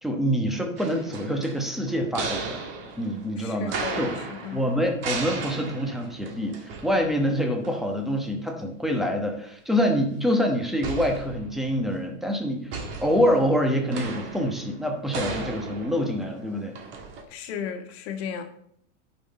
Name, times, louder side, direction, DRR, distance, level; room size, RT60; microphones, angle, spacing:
voice 1, 0.0-2.6 3.0-4.1 4.5-12.7 13.0-16.8, equal, ahead, 2 dB, 1.1 m, -26 dB
sound 1, 0.8-7.4 7.6-7.7 10.8-11.9 12.7-17.2, right 4 dB, 30° right, 1.6 m, -36 dB
voice 2, 3.4-4.6 17.3-18.4, left 7 dB, 50° left, 6 dB, 1.7 m, -35 dB
12.5 x 6.0 x 4.2 m, 0.67 s
supercardioid pair, 160°, 40 cm